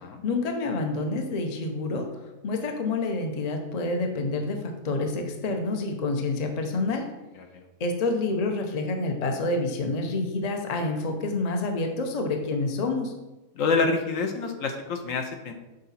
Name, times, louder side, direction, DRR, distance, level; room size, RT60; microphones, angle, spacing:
voice 1, 0.2-2.1 2.4-7.1 7.8-13.1, left 3 dB, 40° left, 4 dB, 0.5 m, -28 dB
voice 2, 13.6-15.5, left 4 dB, 65° left, 4 dB, 1.0 m, -27 dB
6.5 x 4.0 x 4.1 m, 1.1 s
omnidirectional pair, 1.5 m